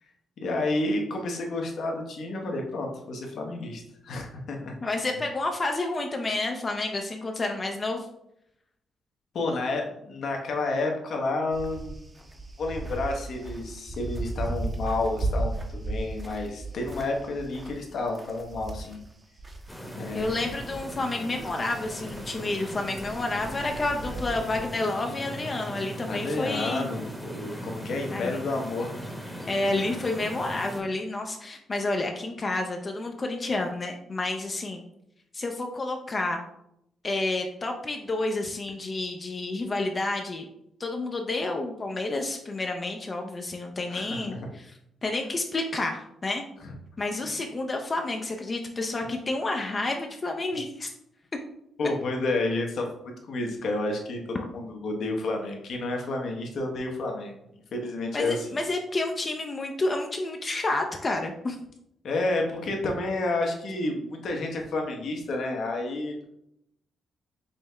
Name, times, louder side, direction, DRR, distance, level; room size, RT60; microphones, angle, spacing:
voice 1, 0.4-4.7 9.3-12.1 12.6-19.0 19.9-20.3 26.1-28.9 43.9-44.5 46.6-46.7 51.8-57.4 57.7-58.5 62.0-66.2, left 2 dB, 65° left, 1 dB, 0.9 m, -30 dB
voice 2, 4.8-8.1 20.1-26.9 28.1-28.4 29.5-34.8 35.3-36.4 37.0-40.4 40.8-46.4 47.0-50.9 58.1-61.6, left 2 dB, 35° left, 3 dB, 0.5 m, -30 dB
sound 1, 11.5-19.7 20.0-24.6, right 2 dB, 25° right, 0.7 m, -36 dB
sound 2, 19.7-30.8, equal, ahead, 0.9 m, -39 dB
5.4 x 2.1 x 3.3 m, 0.78 s
supercardioid pair, 65°, 0 cm